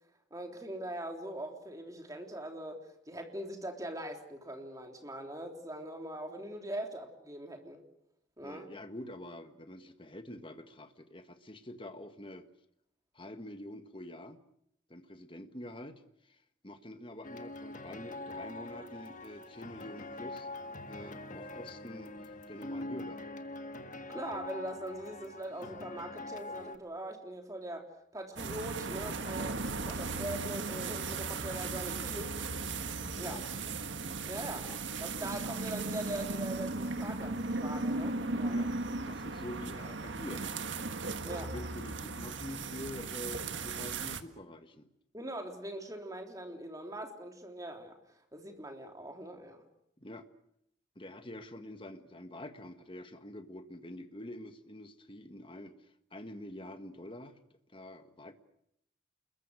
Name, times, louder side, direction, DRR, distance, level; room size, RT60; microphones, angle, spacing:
voice 1, 0.3-7.8 8.4-8.7 24.1-27.9 28.1-32.3 33.2-33.4 34.3-34.7 35.0-38.7 41.2-41.5 45.1-49.6, right 1 dB, 20° right, 3 dB, 3.4 m, -42 dB
voice 2, 8.4-12.5 13.1-14.4 14.9-20.5 20.8-23.2 33.1-33.5 34.6-34.8 35.2-35.3 38.5-38.7 39.1-40.5 41.3-44.9 50.0-50.3 51.0-57.4 57.7-58.3, left 1 dB, 30° left, 8 dB, 1.7 m, -46 dB
sound 1, 17.2-26.8, left 2 dB, 45° left, 1.6 m, -44 dB
sound 2, 28.4-44.2, right 3 dB, 80° right, 1.6 m, -37 dB
29.5 x 22.0 x 6.5 m, 0.75 s
head